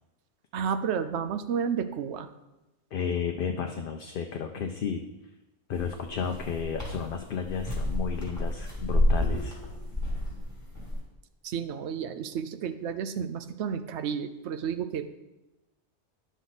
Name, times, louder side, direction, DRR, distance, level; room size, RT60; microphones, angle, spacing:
voice 1, 0.5-2.3 11.4-15.1, right 7 dB, 80° right, 10 dB, 0.9 m, -31 dB
voice 2, 2.9-5.1 5.7-9.6, left 6 dB, 60° left, 4 dB, 0.7 m, -33 dB
sound 1, 5.7-11.0, left 1 dB, 15° right, 2.5 m, -29 dB
10.0 x 6.3 x 4.0 m, 0.99 s
omnidirectional pair, 1.1 m